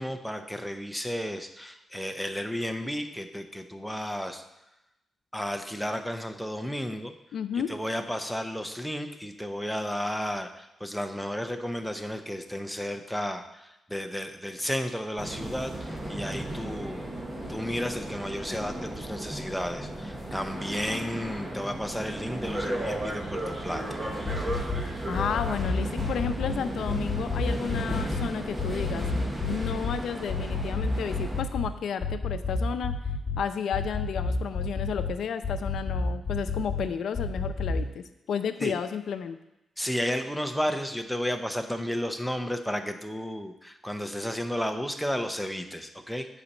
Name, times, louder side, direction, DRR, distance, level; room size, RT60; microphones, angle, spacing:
voice 1, 0.0-4.4 5.3-7.1 7.5-17.1 17.5-24.0 24.4-24.7 38.6-38.8 39.8-46.3, equal, ahead, 6 dB, 0.6 m, -33 dB
voice 2, 7.3-7.7 20.9-21.0 25.1-29.1 29.4-33.0 33.4-39.4, left 7 dB, 75° left, 10 dB, 0.6 m, -32 dB
sound 1, 15.2-31.4, right 1 dB, 20° right, 1.1 m, -35 dB
sound 2, 24.3-24.8 25.1-26.5 26.9-28.3 28.6-30.0 30.3-31.7 32.0-33.4 33.7-35.1 35.4-36.8 37.1-37.8, left 4 dB, 30° left, 2.6 m, -29 dB
8.3 x 4.2 x 7.1 m, 0.91 s
wide cardioid pair, 155°, 0 cm